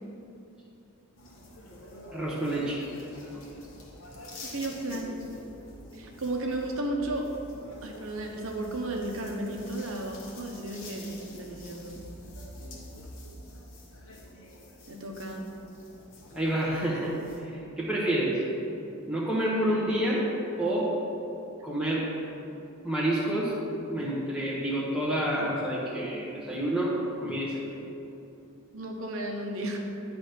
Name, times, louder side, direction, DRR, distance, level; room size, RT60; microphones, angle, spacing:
sound 1, 1.2-17.4, left 1 dB, 60° left, 1.3 m, -47 dB
voice 1, 2.1-2.8 3.3-3.4 16.3-18.4 19.1-20.3 20.6-21.0 21.6-22.1 22.8-23.5 23.9-27.6, right 1 dB, 5° right, -9 dB, 1.0 m, -28 dB
voice 2, 4.5-5.2 5.9-7.3 7.8-12.0 14.9-15.4 28.7-29.8, right 1 dB, 65° right, 1 dB, 1.0 m, -34 dB
10.0 x 3.4 x 5.8 m, 2.8 s
head